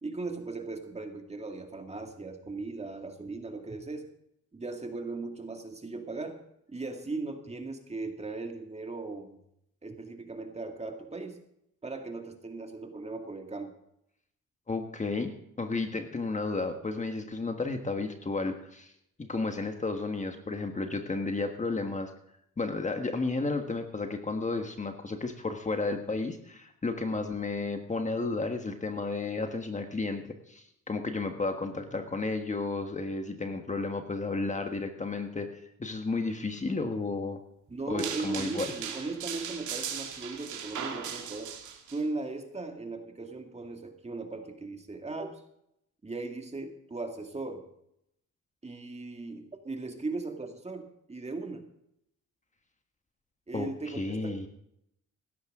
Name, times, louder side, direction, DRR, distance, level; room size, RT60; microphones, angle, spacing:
voice 1, 0.0-4.1 4.5-6.4 6.7-9.4 9.8-11.4 11.8-13.7 27.0-27.3 37.7-41.6 41.9-45.4 46.0-47.6 48.6-51.7 53.5-54.5, right 3 dB, 20° right, 4 dB, 2.2 m, -38 dB
voice 2, 14.7-18.9 19.2-22.1 22.6-35.5 35.8-37.4 37.9-38.7 53.5-54.5, left 3 dB, 25° left, 5 dB, 1.5 m, -32 dB
sound 1, 38.0-42.0, right 8 dB, 75° right, 2.3 m, -38 dB
16.0 x 13.0 x 3.7 m, 0.76 s
cardioid pair, 90°, 30 cm